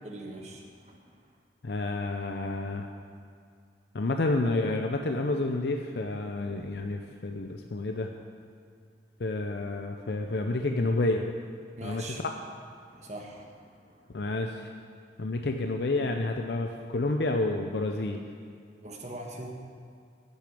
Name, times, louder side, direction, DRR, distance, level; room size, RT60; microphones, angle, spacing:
voice 1, 0.0-1.3 11.8-12.2 12.9-14.1 18.8-19.5, right 1 dB, 40° right, 1 dB, 1.4 m, -43 dB
voice 2, 1.6-2.9 3.9-8.1 9.2-11.2 11.8-12.3 14.1-14.7 15.2-18.2, left 2 dB, 60° left, 4 dB, 0.6 m, -29 dB
10.0 x 6.5 x 8.4 m, 2.3 s
head